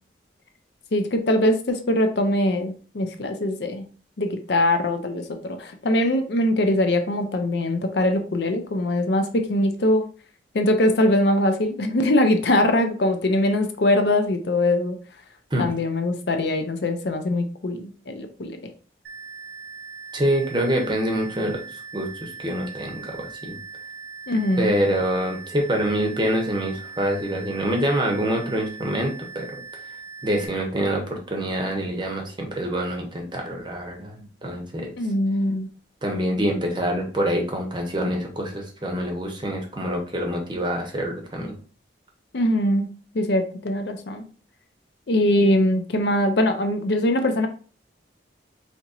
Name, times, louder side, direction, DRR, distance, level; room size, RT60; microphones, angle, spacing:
voice 1, 0.9-3.8 4.2-10.1 10.5-15.0 15.6-18.6 24.3-24.7 35.0-35.7 42.3-44.3 45.1-47.5, left 1 dB, 65° left, 6 dB, 0.5 m, -22 dB
sound 1, 19.0-30.5, right 5 dB, 60° right, 0.6 m, -40 dB
voice 2, 20.1-21.6 21.9-23.6 24.6-29.6 30.2-34.9 36.0-41.6, right 1 dB, 25° right, 2 dB, 0.7 m, -26 dB
4.2 x 2.9 x 2.4 m, 0.39 s
head